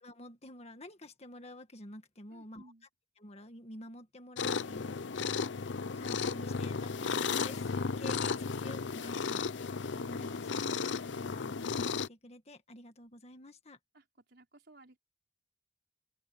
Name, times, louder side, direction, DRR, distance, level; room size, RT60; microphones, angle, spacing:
voice 1, 0.0-2.6 3.2-5.1 5.9-7.1 7.4-10.7 11.1-13.8, left 1 dB, 35° left, 1.8 m, -49 dB
voice 2, 2.3-2.9 13.9-15.0, right 2 dB, 65° right, 5.1 m, -58 dB
sound 1, 4.4-12.1, left 5 dB, 80° left, 0.6 m, -34 dB
open air
head